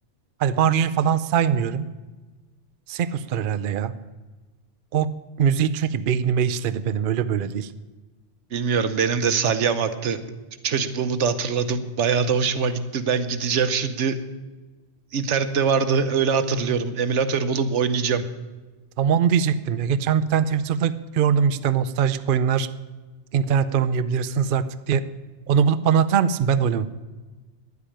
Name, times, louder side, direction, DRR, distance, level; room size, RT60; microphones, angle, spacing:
voice 1, 0.4-1.9 2.9-3.9 4.9-5.1 5.4-7.7 19.0-22.7 23.3-25.0 25.5-26.9, right 7 dB, 55° right, 12 dB, 0.7 m, -22 dB
voice 2, 8.5-10.2 10.6-14.2 15.1-18.2, right 6 dB, 85° right, 11 dB, 1.2 m, -23 dB
10.0 x 8.3 x 10.0 m, 1.2 s
omnidirectional pair, 1.2 m